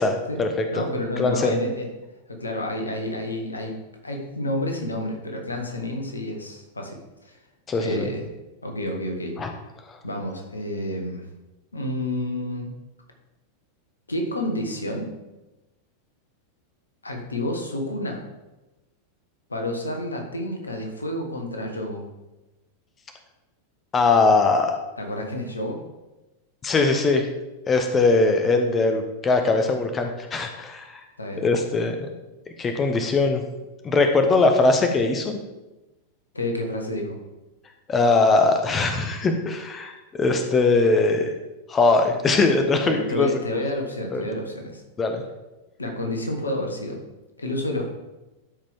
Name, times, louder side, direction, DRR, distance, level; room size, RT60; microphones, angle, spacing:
voice 1, 0.0-0.8 1.2-1.6 7.7-8.1 9.4-9.5 23.9-24.7 26.6-27.3 27.7-31.0 31.4-32.1 32.6-33.4 33.8-35.4 37.9-41.3 41.7-43.3 44.1-44.2 45.0-45.2, left 3 dB, 20° left, 5 dB, 0.9 m, -21 dB
voice 2, 0.7-1.9 2.3-3.8 4.0-7.4 7.8-8.3 8.6-9.4 10.0-11.3 11.7-12.7 14.1-15.1 17.0-18.2 19.5-22.0 25.0-25.8 31.2-31.5 36.3-37.2 42.8-44.8 45.8-47.0 47.4-47.9, left 1 dB, 80° left, 3 dB, 1.5 m, -29 dB
12.5 x 5.2 x 3.6 m, 1.0 s
figure-of-eight pair, 90°, 0 cm